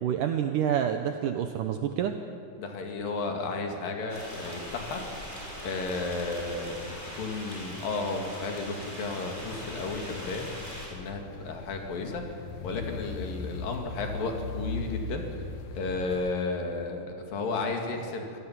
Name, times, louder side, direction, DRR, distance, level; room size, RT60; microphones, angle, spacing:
voice 1, 0.0-2.1, right 9 dB, 75° right, 6 dB, 1.9 m, -28 dB
voice 2, 2.6-5.0 5.3-12.3 12.6-15.3 15.8-18.4, left 3 dB, 60° left, 3 dB, 3.8 m, -33 dB
sound 1, 4.1-10.9, equal, 10° left, 5.0 m, -41 dB
sound 2, 9.4-16.3, left 4 dB, 80° left, 1.5 m, -39 dB
26.0 x 18.0 x 7.4 m, 2.6 s
omnidirectional pair, 4.6 m